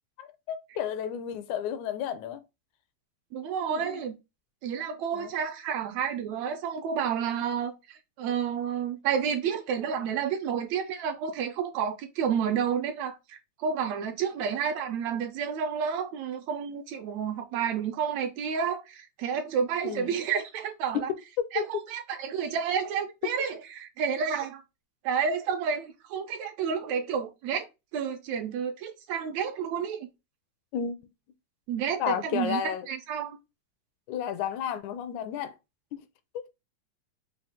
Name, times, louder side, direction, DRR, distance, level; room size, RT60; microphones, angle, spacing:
voice 1, 0.2-2.4 3.6-4.0 5.1-5.3 19.8-20.2 20.9-21.0 21.4-21.6 23.2-23.3 30.7-31.0 32.0-32.9 34.1-35.6 35.9-36.0 36.3-36.5, left 9 dB, 80° left, 2.0 m, -32 dB
voice 2, 3.3-4.1 4.6-21.1 21.5-24.6 25.0-27.7 27.9-30.1 31.7-32.6 32.9-33.4, right 7 dB, 75° right, 1.7 m, -30 dB
5.6 x 2.3 x 3.5 m
omnidirectional pair, 3.4 m